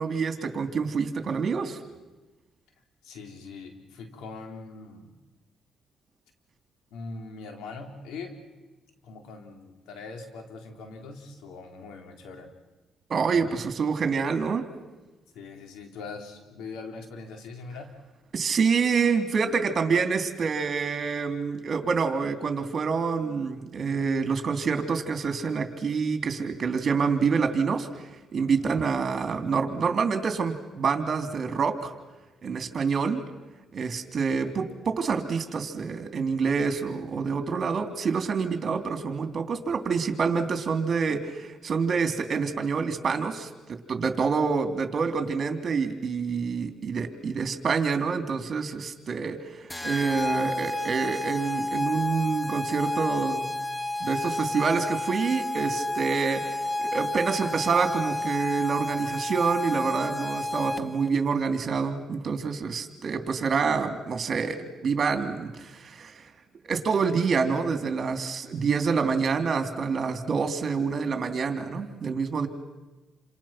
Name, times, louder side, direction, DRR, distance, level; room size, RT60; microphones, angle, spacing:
voice 1, 0.0-1.8 13.1-14.7 18.3-27.9 28.3-31.9 32.4-33.2 33.7-43.5 43.9-53.5 54.0-66.3 66.7-72.5, right 5 dB, 45° right, 6 dB, 3.2 m, -27 dB
voice 2, 3.0-5.1 6.9-8.4 9.0-12.5 15.3-17.9 28.4-28.9, left 4 dB, 90° left, 4 dB, 4.1 m, -42 dB
sound 1, 49.7-61.1, left 1 dB, 10° left, 1.0 m, -31 dB
29.0 x 27.0 x 6.0 m, 1.1 s
cardioid pair, 90°, 0 cm